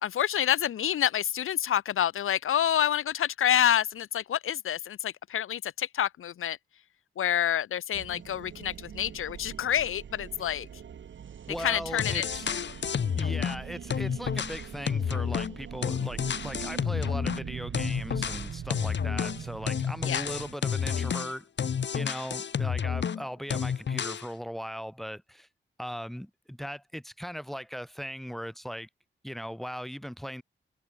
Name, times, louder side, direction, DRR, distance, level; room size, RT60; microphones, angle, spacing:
voice 1, 0.0-6.6 7.2-10.7 11.6-12.2 12.5-12.6 20.1-20.3, left 10 dB, 85° left, 1.0 m, -28 dB
sound 1, 7.9-20.6, right 8 dB, 65° right, 1.4 m, -42 dB
voice 2, 11.5-12.5 13.2-25.5 25.8-28.9 29.2-30.4, equal, ahead, 1.5 m, -39 dB
sound 2, 12.0-13.6 13.9-17.4 17.7-23.2 23.5-24.3, left 7 dB, 60° left, 2.0 m, -30 dB
wide cardioid pair, 120°, 21 cm